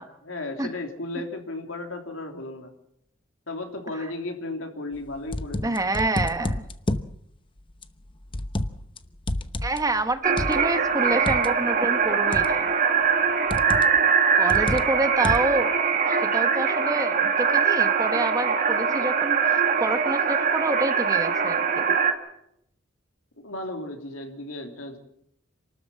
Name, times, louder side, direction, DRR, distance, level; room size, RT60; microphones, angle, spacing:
voice 1, 0.0-2.7 3.5-5.7 23.4-25.0, left 2 dB, 85° left, 4 dB, 3.2 m, -35 dB
sound 1, 5.0-7.1 7.8-9.0 9.2-11.5 12.3-12.7 13.5-14.0 14.5-15.6, left 1 dB, 25° left, 0.9 m, -30 dB
voice 2, 5.6-6.6 9.6-12.7 14.3-15.7 16.1-21.9, right 2 dB, 15° right, 9 dB, 1.2 m, -28 dB
sound 2, 10.2-22.1, right 6 dB, 45° right, 2.2 m, -22 dB
27.5 x 13.0 x 7.6 m, 0.78 s
head